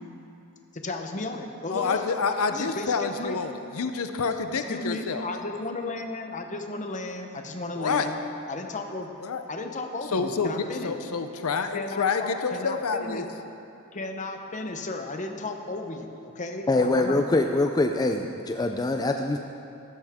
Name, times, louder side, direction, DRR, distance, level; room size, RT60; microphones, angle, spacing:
voice 1, 0.7-2.0 2.5-3.4 4.5-8.1 8.5-9.1 9.5-11.0 11.7-13.3 13.9-17.2, left 2 dB, 35° left, 5 dB, 0.9 m, -34 dB
voice 2, 1.7-5.3 7.7-8.1 9.2-9.4 10.1-13.3, left 5 dB, 70° left, 8 dB, 0.6 m, -28 dB
voice 3, 16.7-19.4, left 2 dB, 20° left, 4 dB, 0.4 m, -24 dB
14.5 x 12.5 x 3.6 m, 2.7 s
head